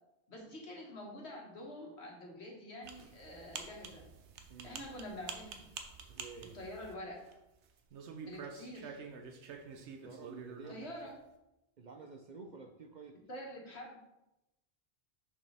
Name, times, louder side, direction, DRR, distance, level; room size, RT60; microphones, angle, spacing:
voice 1, 0.3-4.1 4.6-5.7 6.5-7.2 8.3-9.0 10.7-11.1 13.3-14.0, left 1 dB, 75° left, -1 dB, 1.8 m, -46 dB
sound 1, 2.8-7.5 7.8-10.9, right 5 dB, 85° right, 1.1 m, -48 dB
voice 2, 6.1-6.6 10.0-11.1 11.8-13.2, right 4 dB, 50° right, 4 dB, 0.6 m, -51 dB
6.3 x 6.2 x 3.4 m, 0.93 s
omnidirectional pair, 1.1 m